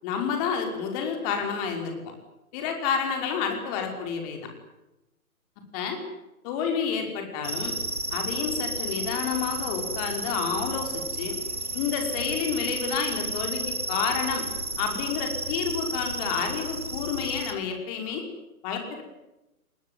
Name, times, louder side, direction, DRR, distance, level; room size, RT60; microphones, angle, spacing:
voice 1, 0.0-2.0 2.5-4.5 5.7-6.0 6.4-7.7 8.1-11.3 11.7-14.4 14.8-18.2 18.6-18.8, left 6 dB, 25° left, 4 dB, 5.6 m, -29 dB
sound 1, 7.4-17.5, right 2 dB, 85° right, 3.6 m, -32 dB
24.0 x 21.0 x 9.7 m, 0.96 s
figure-of-eight pair, 135°, 44 cm